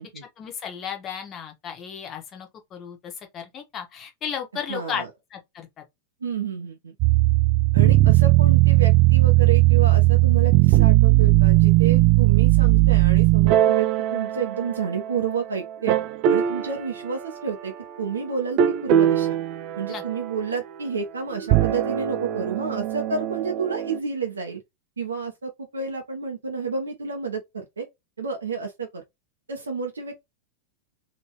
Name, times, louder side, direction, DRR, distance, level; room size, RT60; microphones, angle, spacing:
voice 1, 0.4-5.0 5.3-5.8 19.9-20.0, left 8 dB, 30° left, 1.3 m, -34 dB
voice 2, 4.7-5.1 6.2-6.9 7.7-15.9 16.3-17.7 18.0-19.3 19.8-24.6 25.0-27.8 28.2-29.0 29.5-30.2, right 5 dB, 75° right, 0.9 m, -30 dB
sound 1, 7.0-15.3 15.9-16.7 18.6-20.3 21.4-24.0, right 16 dB, 40° right, 0.4 m, -18 dB
3.7 x 2.9 x 3.0 m
figure-of-eight pair, 90°, 0 cm